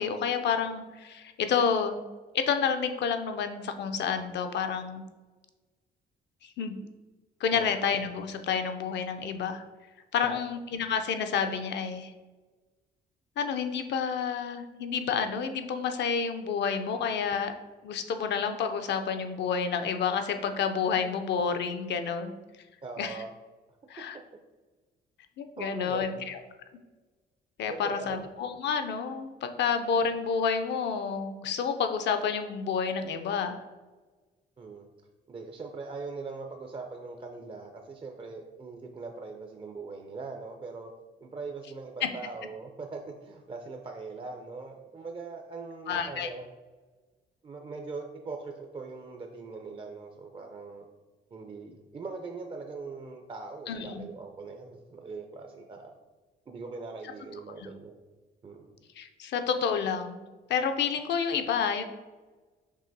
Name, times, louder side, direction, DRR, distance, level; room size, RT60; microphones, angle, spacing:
voice 1, 0.0-2.0 2.3-5.0 6.4-6.9 7.4-9.6 10.1-12.1 13.4-17.5 17.8-22.3 23.0-23.1 23.9-24.2 25.4-26.4 27.6-33.6 45.9-46.3 53.7-54.1 57.6-57.7 59.0-60.2 60.5-61.8, left 6 dB, 60° left, 7 dB, 0.4 m, -29 dB
voice 2, 22.8-23.3 24.0-24.1 25.6-26.3 27.7-28.2 34.6-34.9 35.3-40.9 41.2-46.4 47.4-50.9 51.3-55.9 56.5-57.9 58.4-58.7, right 4 dB, 25° right, 4 dB, 0.4 m, -41 dB
5.4 x 2.8 x 2.6 m, 1.3 s
cardioid pair, 90°, 20 cm